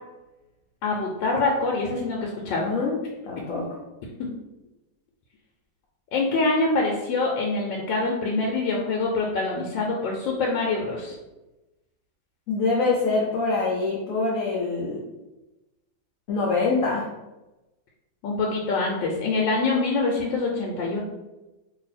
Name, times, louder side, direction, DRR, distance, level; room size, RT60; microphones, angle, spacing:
voice 1, 0.8-2.7 4.2-4.3 6.1-11.1 18.2-21.0, left 3 dB, 90° left, -1 dB, 1.3 m, -25 dB
voice 2, 2.6-3.6 12.5-15.0 16.3-17.1, left 3 dB, 60° left, -4 dB, 0.9 m, -25 dB
2.9 x 2.7 x 4.1 m, 1.0 s
omnidirectional pair, 2.0 m